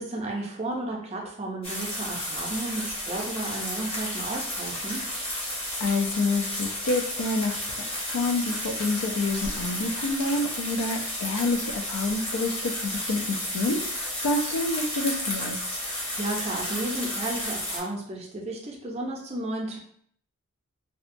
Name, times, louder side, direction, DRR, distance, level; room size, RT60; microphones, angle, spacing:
voice 1, 0.0-5.0 15.9-19.8, right 2 dB, 30° right, -1 dB, 0.5 m, -33 dB
sound 1, 1.6-17.8, left 1 dB, 25° left, 0.6 m, -32 dB
voice 2, 5.8-7.8 8.1-15.6, left 2 dB, 80° left, 5 dB, 0.4 m, -28 dB
2.7 x 2.2 x 2.5 m, 0.63 s
head